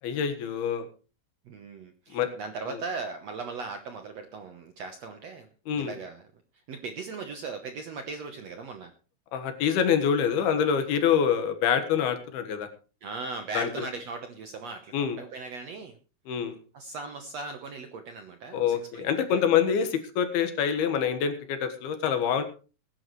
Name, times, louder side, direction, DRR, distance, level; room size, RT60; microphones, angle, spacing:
voice 1, 0.0-0.9 2.1-2.3 5.7-5.9 9.3-12.7 13.6-13.7 14.9-15.2 16.3-16.6 18.5-22.4, left 8 dB, 80° left, 8 dB, 3.4 m, -26 dB
voice 2, 1.4-5.5 5.7-6.3 6.7-8.9 13.0-15.9 16.7-19.1, right 4 dB, 65° right, 6 dB, 1.6 m, -38 dB
21.0 x 11.0 x 3.2 m, 0.35 s
omnidirectional pair, 4.4 m